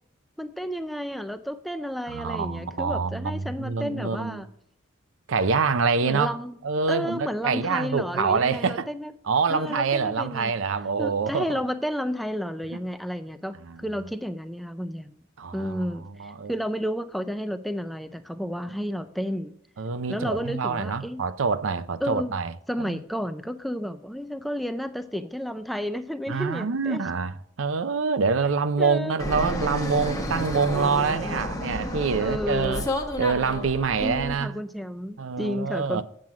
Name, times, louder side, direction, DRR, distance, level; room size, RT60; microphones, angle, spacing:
voice 1, 0.4-4.5 6.0-6.6 6.9-9.1 9.5-10.5 11.0-15.2 15.5-19.5 20.1-21.2 22.0-22.3 22.7-27.1 28.8-29.2 30.7-31.5 32.2-32.9 34.0-36.0, equal, ahead, 0.4 m, -31 dB
voice 2, 2.1-4.4 5.3-6.4 6.6-8.9 9.3-11.6 13.7-13.8 15.4-15.8 16.2-16.5 19.8-22.5 22.8-23.0 26.3-32.9 33.2-34.5 35.2-36.0, right 5 dB, 70° right, 0.5 m, -26 dB
Fixed-wing aircraft airplane, 29.2-34.3, left 1 dB, 15° left, 1.0 m, -31 dB
7.5 x 7.5 x 4.8 m
head